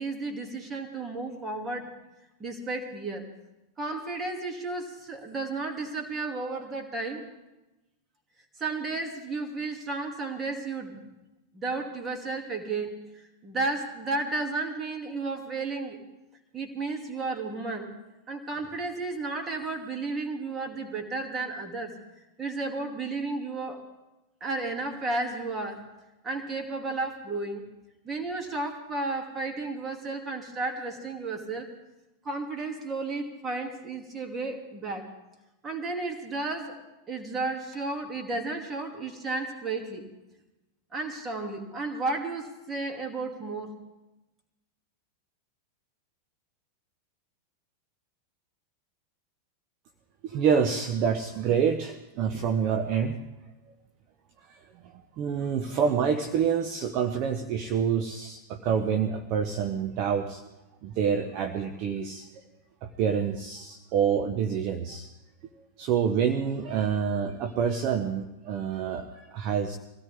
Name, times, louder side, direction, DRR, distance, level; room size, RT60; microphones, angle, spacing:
voice 1, 0.0-2.0 2.4-3.3 3.8-7.3 8.6-11.1 11.5-16.0 16.5-17.9 18.3-22.0 22.4-23.8 24.4-25.8 26.2-27.6 28.0-31.7 32.2-35.1 35.6-36.8 37.1-40.1 40.9-43.7, right 3 dB, 20° right, 3 dB, 2.7 m, -33 dB
voice 2, 50.2-53.2 55.2-60.4 60.8-62.3 63.0-65.1 65.8-69.8, right 7 dB, 40° right, 6 dB, 1.1 m, -27 dB
23.5 x 16.5 x 3.6 m, 1.0 s
figure-of-eight pair, 90°, 0 cm